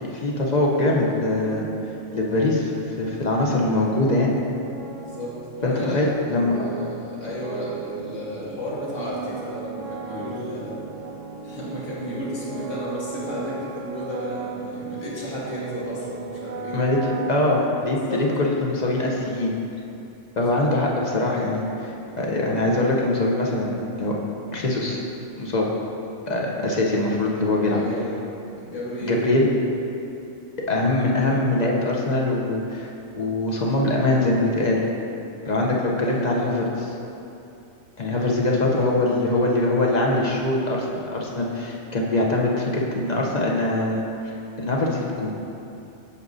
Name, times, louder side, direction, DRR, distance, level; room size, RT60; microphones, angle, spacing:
voice 1, 0.0-1.7 2.1-4.3 5.6-6.6 16.7-19.5 20.4-24.1 24.5-25.0 25.4-25.7 26.3-27.8 29.1-29.5 30.7-34.8 35.4-36.9 38.0-40.9 41.1-44.0 44.6-45.3, left 2 dB, 45° left, -2 dB, 0.7 m, -23 dB
sound 1, 0.8-18.5, right 4 dB, 80° right, 1.0 m, -37 dB
voice 2, 4.9-6.0 6.5-10.7 11.4-16.7 18.0-18.2 20.5-20.7 27.7-28.1 28.6-29.3 36.0-36.2, equal, 90° left, -7 dB, 1.9 m, -33 dB
8.3 x 6.1 x 2.6 m, 2.8 s
omnidirectional pair, 1.3 m